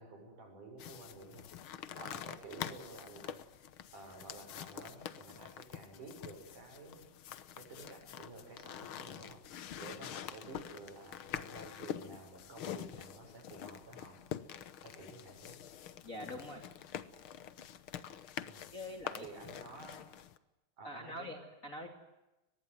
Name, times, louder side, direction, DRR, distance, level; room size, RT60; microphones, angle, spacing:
voice 1, 0.0-3.4 3.9-7.1 7.6-14.2 14.8-15.6 18.5-18.7 19.1-20.2 20.8-21.4, right 2 dB, 65° right, 3 dB, 8.2 m, -52 dB
sound 1, 0.8-20.4, left 10 dB, 85° left, 1.1 m, -46 dB
voice 2, 16.0-16.6 18.7-19.3 20.8-21.9, left 1 dB, 25° left, 3 dB, 2.8 m, -44 dB
23.5 x 21.0 x 9.4 m, 1.0 s
omnidirectional pair, 3.9 m